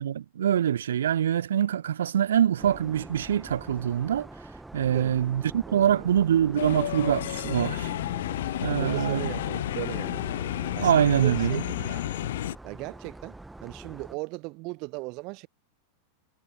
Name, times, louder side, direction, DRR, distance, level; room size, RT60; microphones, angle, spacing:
voice 1, 0.0-4.3 4.7-7.9 8.6-9.3 10.8-11.6, right 10 dB, 65° right, 1.3 m, -24 dB
sound 1, 2.6-14.2, right 2 dB, 5° right, 1.7 m, -44 dB
voice 2, 4.8-5.2 5.7-6.1 8.6-10.4 10.8-12.1 12.6-15.5, right 27 dB, 40° right, 0.9 m, -38 dB
sound 2, 6.6-12.6, left 13 dB, 60° left, 0.7 m, -31 dB
figure-of-eight pair, 90°, 0 cm